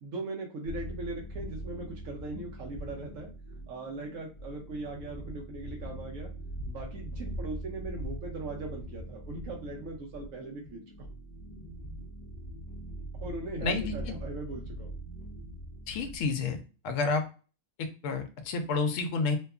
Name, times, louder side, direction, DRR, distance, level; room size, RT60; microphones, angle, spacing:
voice 1, 0.0-3.3 3.7-6.3 6.7-10.8 13.2-14.9, right 2 dB, 75° right, 0 dB, 0.9 m, -39 dB
sound 1, 0.6-16.6, right 1 dB, 40° left, 0.6 m, -42 dB
voice 2, 13.6-13.9 15.9-17.2 17.8-19.4, left 4 dB, 75° left, 7 dB, 0.9 m, -30 dB
2.7 x 2.3 x 2.3 m, 0.34 s
omnidirectional pair, 1.4 m